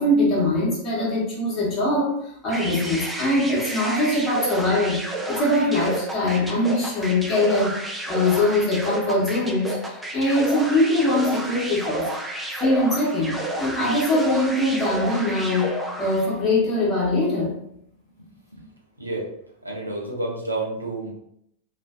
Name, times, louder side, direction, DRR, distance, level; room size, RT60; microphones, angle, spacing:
voice 1, 0.0-2.1 2.4-7.8 8.1-12.1 12.6-17.5, left 1 dB, 30° left, -5 dB, 0.9 m, -22 dB
sound 1, 2.5-16.3, right 1 dB, 5° right, 0.4 m, -31 dB
voice 2, 18.2-18.7 19.0-19.3 19.6-21.1, right 2 dB, 85° right, -2 dB, 0.5 m, -30 dB
2.4 x 2.1 x 2.3 m, 0.74 s
figure-of-eight pair, 90°, 0 cm